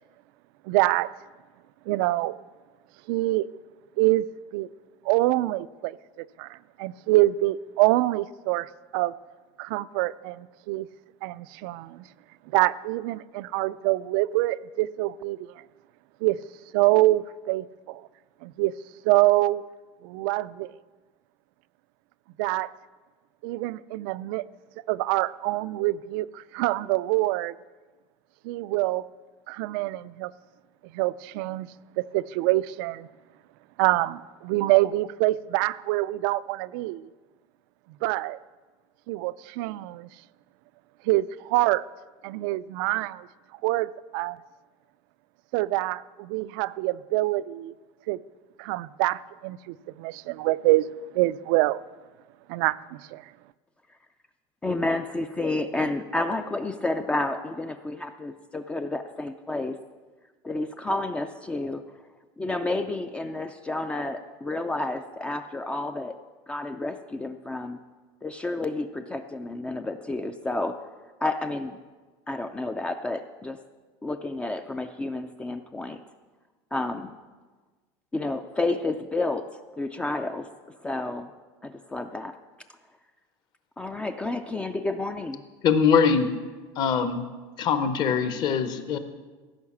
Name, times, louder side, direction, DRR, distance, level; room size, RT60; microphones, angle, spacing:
voice 1, 0.7-1.1 1.9-2.4 3.1-3.5 4.0-4.3 4.5-4.7 5.1-9.1 9.6-10.9 11.2-12.0 12.5-15.4 16.2-16.4 16.7-18.1 18.4-18.7 19.1-19.6 20.0-20.7 22.4-22.7 23.4-24.4 24.9-27.6 28.4-29.1 29.5-30.3 30.9-31.7 32.0-33.1 33.8-37.0 38.0-38.4 39.1-40.1 41.1-41.8 42.2-43.3 43.6-44.4 45.5-47.7 48.1-48.2 48.6-50.9 51.1-51.8 52.5-53.2, right 18 dB, 70° right, 17 dB, 0.4 m, -25 dB
voice 2, 54.6-59.7 60.4-61.8 62.4-66.1 66.5-67.8 68.2-70.8 71.2-71.8 72.3-73.6 74.0-76.0 76.7-77.2 78.1-80.5 80.8-81.3 81.6-82.3 83.8-85.4, left 2 dB, 10° left, 8 dB, 0.3 m, -30 dB
voice 3, 85.6-86.3 86.8-87.2 87.6-89.0, left 6 dB, 40° left, 9 dB, 0.9 m, -22 dB
15.5 x 5.7 x 7.2 m, 1.3 s
cardioid pair, 170°, 12 cm